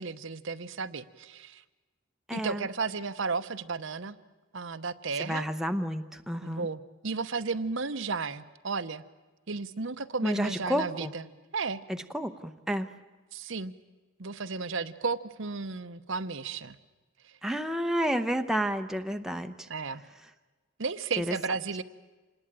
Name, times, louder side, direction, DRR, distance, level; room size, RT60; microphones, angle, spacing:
voice 1, 0.0-1.6 2.3-4.2 4.5-5.4 6.4-9.0 9.5-11.2 11.5-11.8 13.3-13.7 14.2-16.8 17.2-17.4 19.7-20.0 20.8-21.8, right 4 dB, 65° right, 11 dB, 0.9 m, -33 dB
voice 2, 2.3-2.7 5.2-6.7 10.2-11.1 11.9-12.9 17.4-19.7 21.2-21.4, equal, ahead, 6 dB, 0.8 m, -30 dB
27.0 x 19.5 x 9.0 m, 1.2 s
head